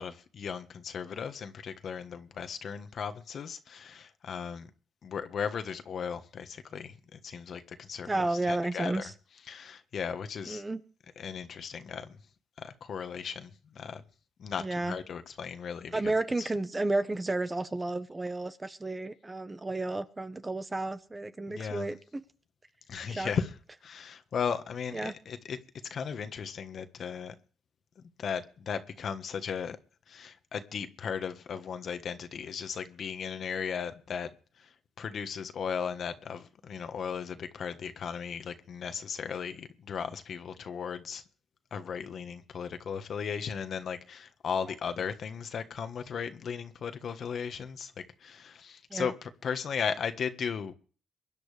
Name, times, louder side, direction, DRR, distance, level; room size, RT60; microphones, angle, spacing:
voice 1, 0.0-4.7 5.0-9.0 9.5-10.6 11.2-12.2 12.6-14.0 14.4-16.0 16.4-16.5 21.5-21.9 22.9-23.5 23.8-25.6 25.9-27.3 28.0-29.8 30.1-34.3 34.6-34.7 35.0-41.2 41.7-50.7, left 6 dB, 55° left, 1.4 m, -36 dB
voice 2, 8.0-9.1 10.5-10.8 14.6-15.0 15.9-22.2 23.0-23.3 24.9-25.1 48.9-49.1, right 2 dB, 20° right, 1.1 m, -32 dB
23.5 x 10.5 x 3.4 m
cardioid pair, 90°, 0 cm